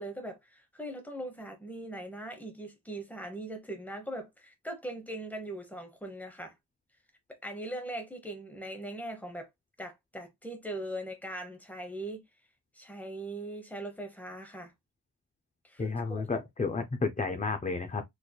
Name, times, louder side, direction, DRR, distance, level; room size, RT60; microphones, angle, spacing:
voice 1, 0.0-6.5 7.3-9.5 9.8-12.2 12.7-14.7 15.6-16.2, right 1 dB, 5° left, 0.9 m, -40 dB
voice 2, 15.8-18.0, left 4 dB, 20° left, 0.4 m, -31 dB
3.9 x 3.1 x 2.2 m
wide cardioid pair, 150°, 42 cm